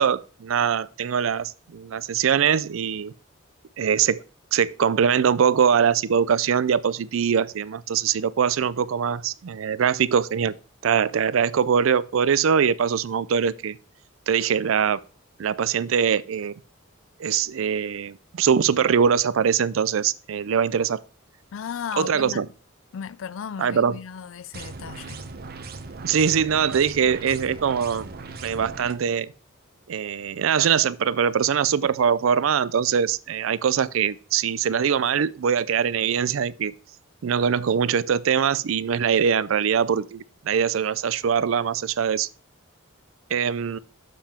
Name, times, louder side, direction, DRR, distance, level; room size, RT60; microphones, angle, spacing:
voice 1, 0.0-3.1 3.8-4.2 4.5-10.5 10.8-13.8 14.3-15.0 15.4-16.5 17.2-21.0 22.0-22.5 23.6-23.9 26.0-28.1 28.4-29.3 29.9-36.7 37.2-42.3 43.3-43.8, right 7 dB, 75° right, 0.4 m, -22 dB
voice 2, 21.5-22.4 22.9-25.3, left 7 dB, 65° left, 0.4 m, -35 dB
sound 1, 24.5-28.9, right 3 dB, 50° right, 0.8 m, -38 dB
6.8 x 5.7 x 4.2 m
head